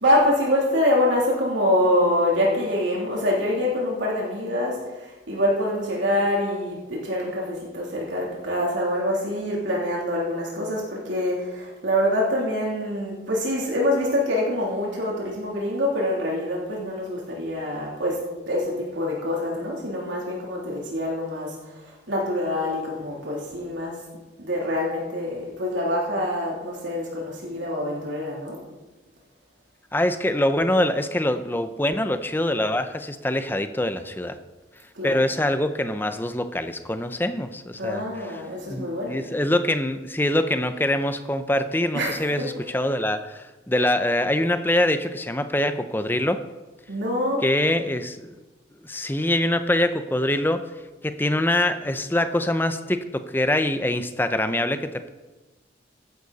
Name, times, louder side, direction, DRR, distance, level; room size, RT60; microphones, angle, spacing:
voice 1, 0.0-18.2 18.5-21.5 22.1-23.9 24.4-28.6 34.9-35.2 37.8-39.2 41.9-42.6 46.9-47.5, left 1 dB, 80° right, -3 dB, 3.2 m, -25 dB
voice 2, 29.9-34.4 35.0-46.4 47.4-48.3 48.8-50.7 51.0-55.1, left 1 dB, 10° left, 9 dB, 0.6 m, -24 dB
15.0 x 11.5 x 4.1 m, 1.2 s
head